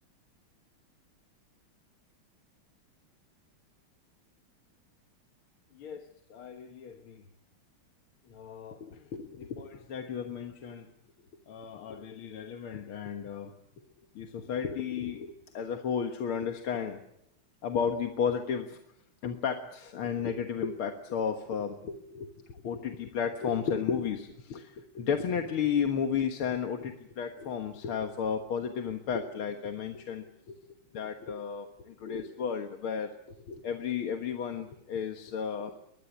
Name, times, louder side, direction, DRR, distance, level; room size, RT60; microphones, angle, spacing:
voice 1, 5.8-7.2 8.3-10.9 11.5-13.5 14.2-17.0 17.6-18.8 19.2-30.6 30.9-33.1 33.5-35.7, left 7 dB, 80° left, 5 dB, 2.3 m, -33 dB
22.5 x 21.0 x 8.4 m, 0.76 s
omnidirectional pair, 2.3 m